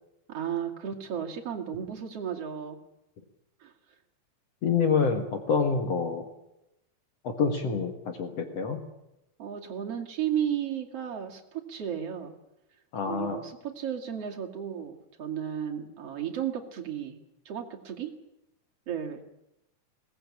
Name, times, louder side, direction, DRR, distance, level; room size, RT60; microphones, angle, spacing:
voice 1, 0.3-2.8 3.6-3.7 9.4-12.3 13.1-17.2 17.4-18.1 18.9-19.3, right 9 dB, 50° right, 2 dB, 3.3 m, -34 dB
voice 2, 4.6-6.3 7.2-8.8 12.9-13.4, left 5 dB, 55° left, 5 dB, 2.6 m, -27 dB
22.0 x 19.0 x 8.7 m, 0.89 s
omnidirectional pair, 3.7 m